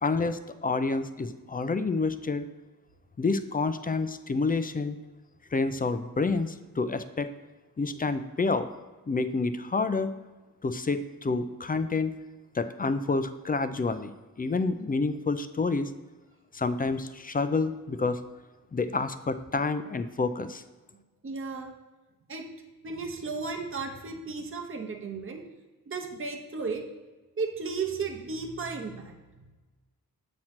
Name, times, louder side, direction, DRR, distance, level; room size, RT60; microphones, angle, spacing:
voice 1, 0.0-2.4 3.2-5.0 5.5-7.3 7.8-8.7 9.1-10.1 10.6-12.1 12.5-14.1 14.4-15.9 16.5-18.2 18.7-20.6, left 3 dB, 25° left, 11 dB, 0.4 m, -28 dB
voice 2, 20.9-21.7 22.3-22.5 22.8-25.4 25.9-26.9 27.4-29.6, right 4 dB, 30° right, 3 dB, 0.9 m, -35 dB
7.5 x 3.0 x 5.8 m, 1.2 s
cardioid pair, 50°, 39 cm